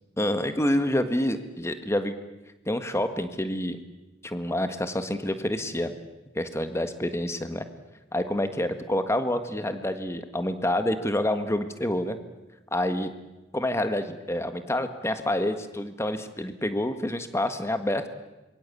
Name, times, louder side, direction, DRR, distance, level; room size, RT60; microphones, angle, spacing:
voice 1, 0.2-2.1 2.6-3.8 4.2-5.9 6.3-7.6 8.1-12.2 12.7-13.1 13.5-18.1, left 1 dB, 15° left, 9 dB, 1.6 m, -27 dB
26.0 x 23.0 x 8.5 m, 1.0 s
head